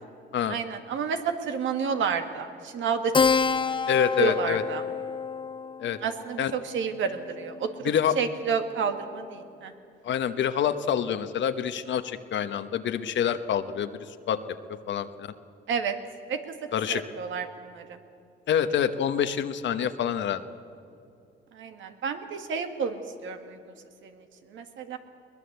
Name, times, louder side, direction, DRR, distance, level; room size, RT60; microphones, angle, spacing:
voice 1, 0.5-3.1 3.5-3.8 4.2-4.8 6.0-7.9 8.2-9.7 15.7-16.0 16.3-16.5 16.9-18.0 21.5-23.7 24.0-25.0, right 6 dB, 75° right, 7 dB, 2.0 m, -30 dB
Keyboard (musical), 3.1-8.1, left 5 dB, 25° left, 0.7 m, -29 dB
voice 2, 3.9-4.6 5.8-6.0 6.4-6.5 7.8-8.2 10.0-14.4 14.7-15.3 16.7-17.0 18.5-20.4, left 9 dB, 65° left, 10 dB, 1.1 m, -26 dB
22.0 x 20.0 x 8.2 m, 2.6 s
cardioid pair, 90°, 20 cm